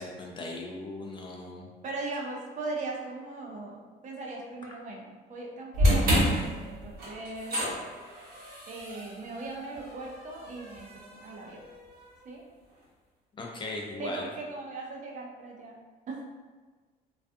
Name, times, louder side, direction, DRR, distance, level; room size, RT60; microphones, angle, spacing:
voice 1, 0.0-1.7 13.3-14.3, left 2 dB, 30° left, -1 dB, 0.4 m, -38 dB
voice 2, 1.8-6.2 6.6-7.7 8.7-11.6 12.2-12.4 14.0-15.7 16.1-16.2, right 3 dB, 45° right, -1 dB, 0.5 m, -39 dB
sound 1, 5.7-12.0, equal, 65° right, 0.9 m, -30 dB
2.4 x 2.3 x 2.5 m, 1.4 s
cardioid pair, 110°, 17 cm